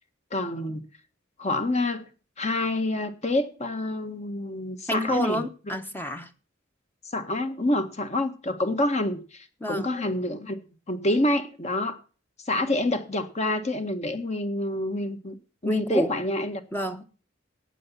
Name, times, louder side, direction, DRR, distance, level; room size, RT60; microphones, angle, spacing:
voice 1, 0.3-0.8 1.4-2.0 2.4-5.4 7.1-12.0 12.5-15.4 15.6-16.6, left 1 dB, 35° left, 1.6 m, -27 dB
voice 2, 4.9-6.3 9.6-9.9 15.6-16.2 16.7-17.0, right 1 dB, 10° left, 1.0 m, -28 dB
14.5 x 9.3 x 5.6 m
head